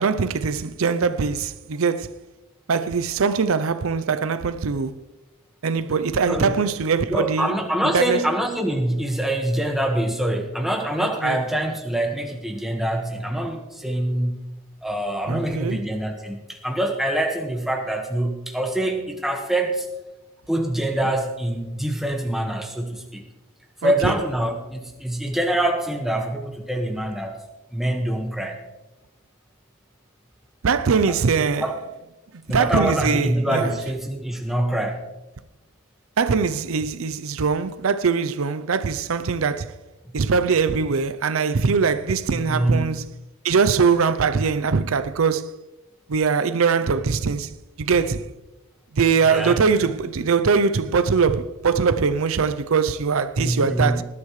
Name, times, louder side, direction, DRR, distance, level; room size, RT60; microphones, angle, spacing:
voice 1, 0.0-2.1 2.7-5.0 5.6-7.6 7.9-8.2 11.0-11.4 15.3-15.8 23.8-24.1 30.6-31.7 32.5-33.7 36.2-39.7 40.1-43.1 43.4-45.6 46.1-47.5 47.8-48.3 48.9-54.0, right 5 dB, 80° right, 0.6 m, -22 dB
voice 2, 7.1-14.4 14.8-19.9 20.5-23.2 23.8-27.4 27.7-28.6 31.1-31.8 32.5-35.0 42.5-42.8 49.2-49.6 53.4-54.0, right 1 dB, ahead, 1.5 m, -25 dB
19.5 x 12.0 x 3.2 m
head